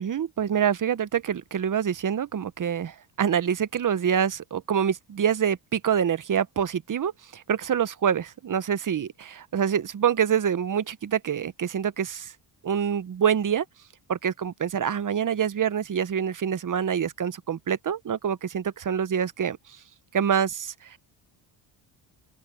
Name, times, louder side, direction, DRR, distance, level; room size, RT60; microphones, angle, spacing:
voice 1, 0.0-12.3 12.6-13.6 14.1-19.8 20.1-21.0, right 8 dB, 40° right, 1.1 m, -26 dB
open air
cardioid pair, 75°, 48 cm